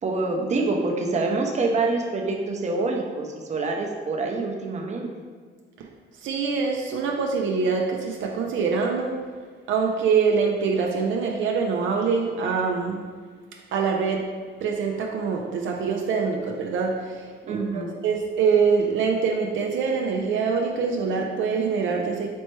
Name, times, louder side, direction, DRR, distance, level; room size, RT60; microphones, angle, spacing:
voice 1, 0.0-5.1 17.4-17.9, right 3 dB, 35° right, 1 dB, 0.6 m, -26 dB
voice 2, 6.2-9.2 9.7-13.0 13.7-14.3 14.6-22.3, right 5 dB, 75° right, 1 dB, 0.5 m, -24 dB
4.2 x 3.2 x 3.2 m, 1.5 s
cardioid pair, 90°, 20 cm